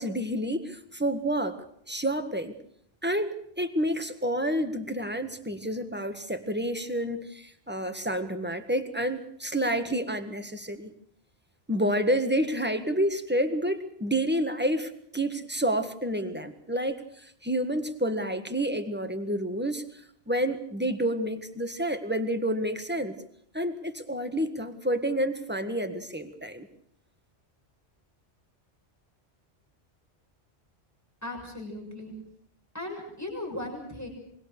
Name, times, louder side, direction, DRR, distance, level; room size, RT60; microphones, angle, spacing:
voice 1, 0.0-1.6 1.9-2.5 3.0-10.9 11.7-19.8 20.3-23.1 23.5-26.7, right 1 dB, 10° right, 7 dB, 1.6 m, -29 dB
voice 2, 31.2-32.1 32.7-34.1, left 1 dB, 15° left, 0 dB, 6.8 m, -37 dB
24.5 x 22.0 x 6.7 m, 0.68 s
omnidirectional pair, 1.2 m